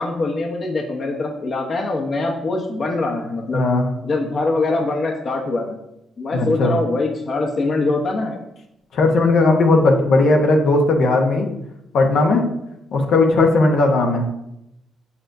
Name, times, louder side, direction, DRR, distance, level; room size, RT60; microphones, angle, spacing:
voice 1, 0.0-3.6 4.0-5.7 6.2-8.4, left 3 dB, 45° left, 1 dB, 1.0 m, -23 dB
voice 2, 3.5-3.9 6.3-6.7 8.9-11.5 11.9-12.4 12.9-14.3, left 2 dB, 70° left, 1 dB, 1.1 m, -16 dB
7.0 x 6.5 x 2.7 m, 0.85 s
cardioid pair, 90°, 0 cm